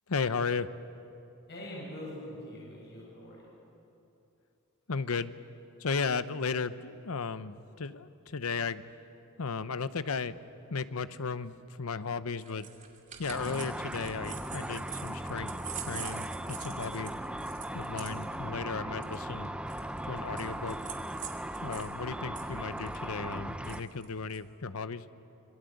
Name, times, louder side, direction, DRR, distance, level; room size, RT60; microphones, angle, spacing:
voice 1, 0.1-0.7 4.9-5.3 5.8-8.8 9.4-10.4 10.7-12.7 13.2-15.5 15.8-17.1 17.7-19.5 20.0-20.8 21.6-25.0, left 5 dB, 90° left, 13 dB, 0.8 m, -35 dB
voice 2, 1.5-3.5, left 1 dB, 55° left, -4 dB, 7.9 m, -43 dB
sound 1, 12.4-21.9 22.2-24.4, right 8 dB, 35° right, 2.6 m, -45 dB
Car / Traffic noise roadway noise / Engine, 13.3-23.8, right 1 dB, 5° right, 0.7 m, -38 dB
26.5 x 22.0 x 8.0 m, 2.8 s
head